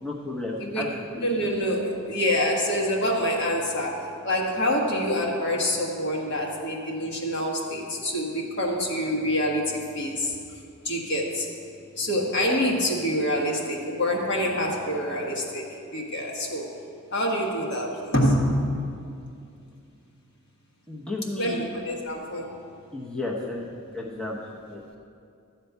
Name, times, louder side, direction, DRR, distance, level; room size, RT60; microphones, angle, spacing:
voice 1, 0.0-1.0 1.4-1.5 20.9-21.7 22.9-23.6 23.9-24.8, left 2 dB, 5° left, -3 dB, 0.9 m, -33 dB
voice 2, 1.2-10.3 10.8-11.5 12.0-15.6 15.9-16.6 17.1-18.6 21.4-22.5, equal, 55° left, -1 dB, 1.6 m, -26 dB
12.5 x 4.4 x 8.1 m, 2.5 s
head